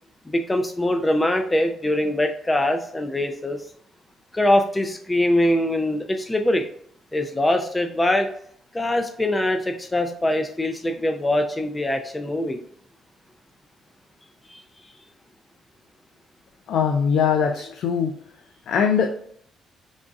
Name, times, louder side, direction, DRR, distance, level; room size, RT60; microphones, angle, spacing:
voice 1, 0.3-3.6 4.3-6.7 7.1-8.3 8.7-12.6 14.5-14.6, left 1 dB, 15° left, 5 dB, 0.5 m, -23 dB
voice 2, 16.7-18.2 18.7-19.1, left 7 dB, 75° left, 4 dB, 0.5 m, -21 dB
3.9 x 3.6 x 2.4 m, 0.63 s
cardioid pair, 90°, 0 cm